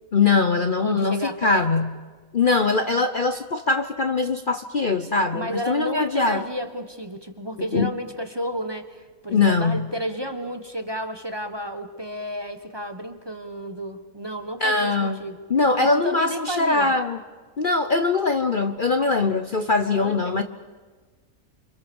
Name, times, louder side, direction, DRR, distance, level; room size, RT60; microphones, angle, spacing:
voice 1, 0.1-2.0 2.3-6.4 7.7-7.9 9.3-9.9 14.6-15.2 15.5-17.2 17.6-20.4, left 3 dB, 40° left, 8 dB, 1.0 m, -22 dB
voice 2, 0.7-1.7 5.3-15.4 15.8-16.9 19.9-20.4, equal, 20° right, 8 dB, 1.5 m, -32 dB
28.0 x 27.5 x 7.2 m, 1.4 s
omnidirectional pair, 1.5 m